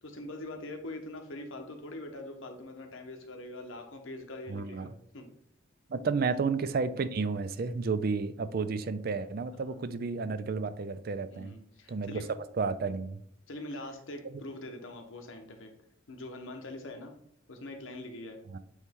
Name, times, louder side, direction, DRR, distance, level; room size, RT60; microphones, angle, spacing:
voice 1, 0.0-5.3 9.7-9.8 11.3-12.3 13.5-15.7 16.1-17.1 17.5-18.4, left 1 dB, 85° left, 4 dB, 1.1 m, -43 dB
voice 2, 4.5-4.9 5.9-11.5 11.9-12.2 12.6-13.2 18.5-18.6, right 4 dB, 50° right, 12 dB, 0.4 m, -31 dB
8.2 x 3.2 x 3.6 m, 0.69 s
head